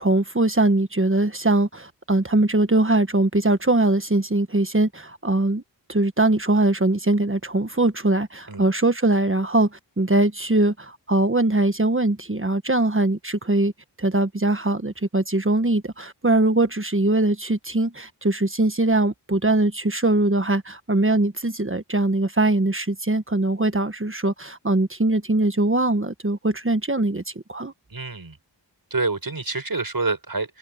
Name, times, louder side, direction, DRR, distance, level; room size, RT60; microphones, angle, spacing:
voice 1, 0.0-5.6 5.9-9.7 10.0-13.7 14.0-27.7, right 2 dB, 30° right, 1.4 m, -21 dB
voice 2, 27.9-28.4 28.9-30.6, right 3 dB, 50° right, 6.4 m, -27 dB
cardioid pair, 40°, 43 cm